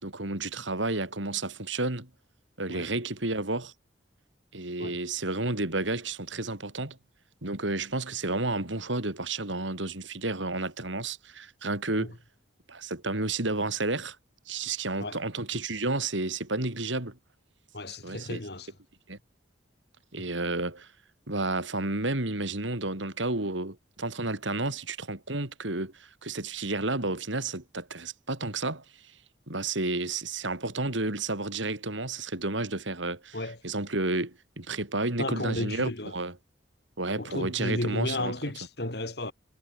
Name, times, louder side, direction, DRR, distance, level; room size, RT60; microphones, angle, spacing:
voice 1, 0.0-2.1 2.6-3.7 4.5-7.0 7.4-12.2 12.7-14.2 14.5-17.2 18.0-18.4 19.1-19.2 20.1-20.9 21.3-28.8 29.5-33.4 33.6-36.4 37.0-38.3, right 2 dB, 80° right, 3.5 m, -31 dB
voice 2, 17.7-18.7 20.2-20.3 33.3-33.6 35.2-36.1 37.2-39.3, left 1 dB, 55° left, 2.9 m, -33 dB
head